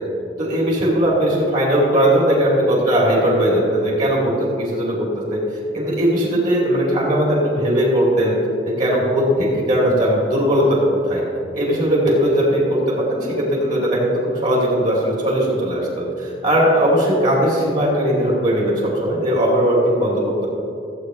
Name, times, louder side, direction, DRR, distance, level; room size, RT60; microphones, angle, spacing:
voice 1, 0.4-5.4 5.7-8.4 8.6-11.2 11.5-20.5, equal, 40° right, -5 dB, 2.8 m, -18 dB
16.0 x 8.3 x 3.2 m, 2.6 s
head